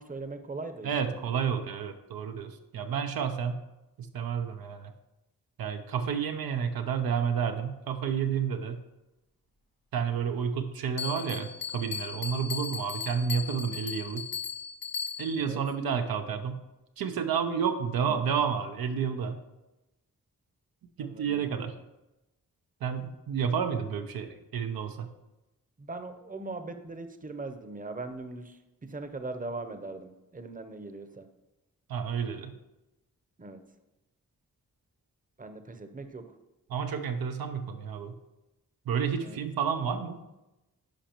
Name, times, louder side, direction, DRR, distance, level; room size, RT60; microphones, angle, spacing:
voice 1, 0.0-1.2 15.5-15.6 18.1-18.2 21.0-21.5 25.8-28.5 28.9-31.3 33.4-33.6 35.4-36.2 39.2-39.4, right 3 dB, 25° right, 8 dB, 0.7 m, -40 dB
voice 2, 0.8-3.6 4.1-4.9 5.6-8.8 9.9-14.2 15.2-16.6 17.0-19.4 21.0-21.7 22.8-25.1 31.9-32.5 36.7-38.1 38.9-40.2, right 7 dB, 85° right, 6 dB, 0.6 m, -30 dB
Bell, 11.0-15.5, left 6 dB, 75° left, 0.8 m, -37 dB
10.5 x 5.0 x 3.0 m, 0.99 s
cardioid pair, 50°, 35 cm